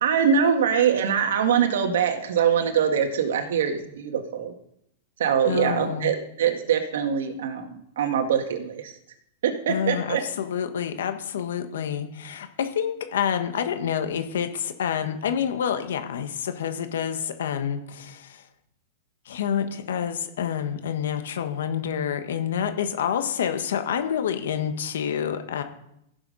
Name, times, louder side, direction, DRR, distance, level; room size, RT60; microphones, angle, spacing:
voice 1, 0.0-4.5 5.2-8.9 9.4-10.2, right 7 dB, 80° right, 5 dB, 1.7 m, -23 dB
voice 2, 5.4-6.1 9.7-18.4 19.2-25.6, left 8 dB, 85° left, 7 dB, 1.3 m, -28 dB
15.0 x 7.0 x 5.5 m, 0.77 s
supercardioid pair, 150°, 0 cm